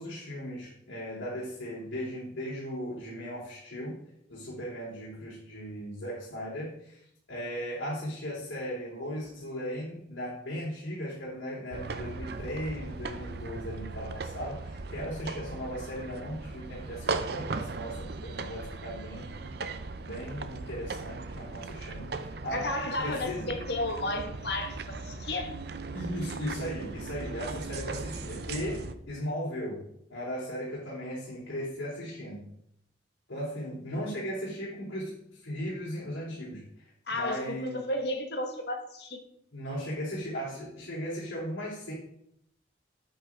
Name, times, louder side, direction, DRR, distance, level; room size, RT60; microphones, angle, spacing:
voice 1, 0.0-4.0 4.3-7.0 7.3-19.5 20.0-23.6 25.9-32.4 33.3-36.6 37.1-37.8 39.5-41.9, equal, 80° left, -7 dB, 3.4 m, -37 dB
sound 1, 11.7-28.9, right 3 dB, 55° right, 0.6 m, -38 dB
voice 2, 22.5-25.5 37.1-39.2, left 1 dB, 55° left, 3 dB, 1.6 m, -33 dB
8.8 x 8.4 x 3.7 m, 0.72 s
head